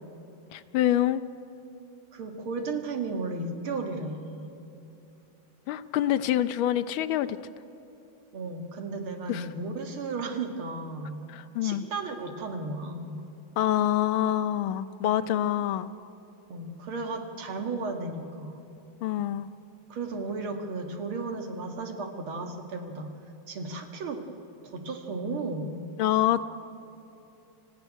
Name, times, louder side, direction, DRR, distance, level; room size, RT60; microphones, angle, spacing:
voice 1, 0.5-1.2 5.7-7.4 9.3-9.5 11.3-11.8 13.6-15.9 19.0-19.5 26.0-26.4, left 12 dB, 80° left, 13 dB, 1.5 m, -26 dB
voice 2, 2.1-4.5 8.3-11.2 11.6-13.3 16.5-18.8 19.9-23.1 23.5-24.2 24.6-25.8, right 3 dB, 90° right, 4 dB, 2.5 m, -34 dB
25.0 x 15.0 x 10.0 m, 2.9 s
omnidirectional pair, 2.2 m